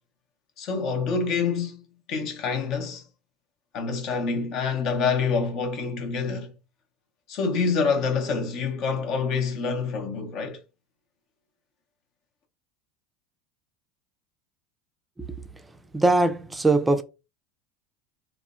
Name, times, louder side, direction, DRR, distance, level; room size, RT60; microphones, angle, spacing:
voice 1, 0.6-3.0 3.7-6.5 7.3-10.6, left 5 dB, 55° left, 0.7 m, -27 dB
voice 2, 15.9-17.0, right 2 dB, 10° right, 0.4 m, -21 dB
3.3 x 2.0 x 2.5 m
hypercardioid pair, 85°, 0 cm